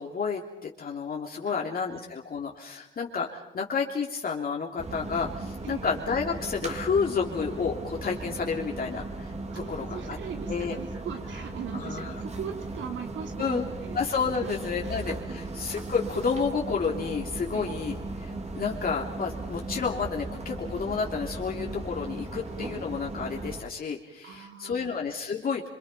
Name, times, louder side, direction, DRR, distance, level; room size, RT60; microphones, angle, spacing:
voice 1, 0.0-9.3 9.7-10.2 10.5-10.7 11.7-12.1 13.4-13.6 13.9-25.7, left 5 dB, 50° left, -1 dB, 3.3 m, -30 dB
voice 2, 1.4-2.0 5.6-6.0 9.5-14.0 14.4-14.7 15.3-15.5 17.5-17.7 24.2-25.0, right 7 dB, 70° right, 4 dB, 3.7 m, -40 dB
sound 1, 4.8-23.6, right 2 dB, 35° right, 3.6 m, -37 dB
27.0 x 24.5 x 5.7 m, 0.96 s
cardioid pair, 90°, 20 cm